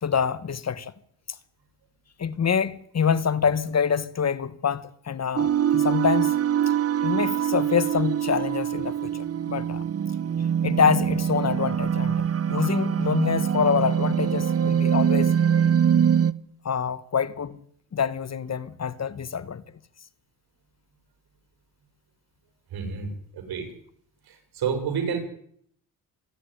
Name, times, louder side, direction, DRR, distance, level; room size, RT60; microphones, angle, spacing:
voice 1, 0.0-0.9 2.2-6.3 7.0-9.8 10.6-15.3 16.6-17.6 17.9-19.6, left 7 dB, 45° left, 1.3 m, -26 dB
sound 1, 5.4-16.3, right 8 dB, 40° right, 0.9 m, -23 dB
voice 2, 22.7-23.7 24.2-25.2, right 6 dB, 80° right, 5.8 m, -30 dB
26.0 x 10.0 x 10.0 m
cardioid pair, 80°, 37 cm